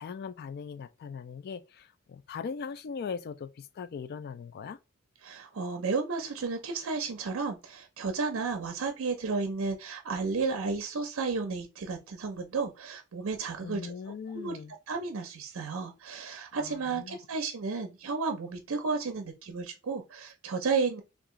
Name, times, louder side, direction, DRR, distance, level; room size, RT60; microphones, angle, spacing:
voice 1, 0.0-4.8 13.6-14.7 16.6-17.2, left 6 dB, 50° left, 0.3 m, -40 dB
voice 2, 5.2-13.9 14.3-14.6 14.9-21.0, right 4 dB, 65° right, 0.5 m, -32 dB
2.9 x 2.4 x 3.6 m
head